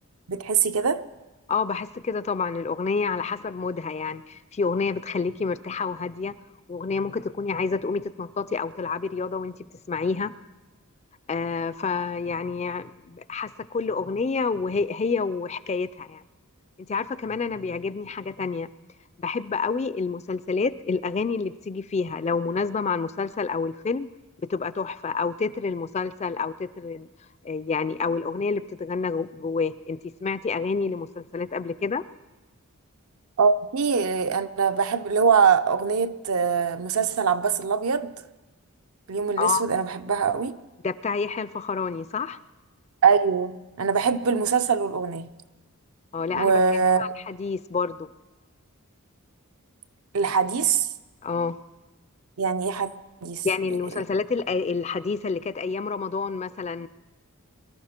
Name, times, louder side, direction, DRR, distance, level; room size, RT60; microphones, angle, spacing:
voice 1, 0.3-1.0 33.4-38.1 39.1-40.5 43.0-45.3 46.3-47.0 50.1-50.9 52.4-52.9 53.2-53.5 54.0-54.1, right 6 dB, 70° right, 0.6 m, -23 dB
voice 2, 1.5-6.4 6.7-9.6 9.9-10.3 11.3-16.2 16.9-18.7 19.2-24.1 24.5-27.1 27.4-32.0 39.4-39.6 40.8-42.4 46.1-46.6 47.0-48.1 51.2-51.6 53.4-56.9, left 4 dB, 30° left, 0.4 m, -28 dB
23.0 x 12.5 x 4.4 m
head